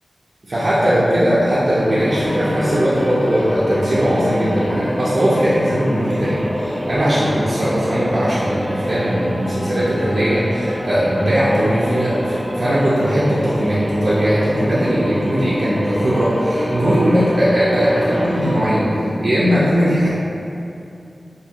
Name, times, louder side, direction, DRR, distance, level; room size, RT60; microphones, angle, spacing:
voice 1, 0.4-20.1, equal, 60° right, -10 dB, 0.5 m, -18 dB
sound 1, 1.6-19.1, equal, 5° right, 0.4 m, -26 dB
2.6 x 2.4 x 2.8 m, 2.6 s
cardioid pair, 45°, 0 cm